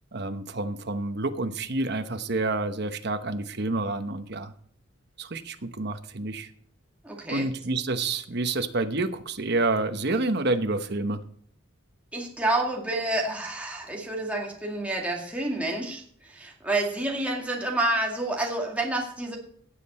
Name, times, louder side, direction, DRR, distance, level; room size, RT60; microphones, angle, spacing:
voice 1, 0.1-4.5 5.2-6.5 7.3-11.2, right 2 dB, 55° right, 8 dB, 1.0 m, -28 dB
voice 2, 7.0-7.5 12.1-19.4, right 2 dB, 5° right, -2 dB, 2.1 m, -29 dB
16.5 x 7.6 x 4.3 m, 0.62 s
head